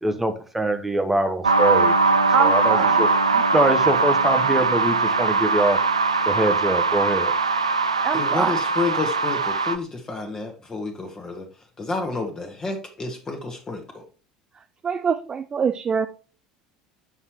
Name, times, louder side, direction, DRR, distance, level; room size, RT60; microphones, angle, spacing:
voice 1, 0.0-1.9 2.4-3.2 3.5-5.8 6.3-7.3, right 1 dB, 10° right, 8 dB, 0.8 m, -23 dB
sound 1, 1.4-9.8, right 4 dB, 80° right, 0.4 m, -21 dB
voice 2, 2.3-3.0 3.3-3.4 8.0-8.6 14.8-16.1, right 6 dB, 25° right, 9 dB, 0.4 m, -24 dB
voice 3, 8.1-11.4 11.8-14.0, left 3 dB, 20° left, 3 dB, 1.2 m, -30 dB
7.1 x 5.5 x 3.0 m, 0.37 s
figure-of-eight pair, 65°, 3 cm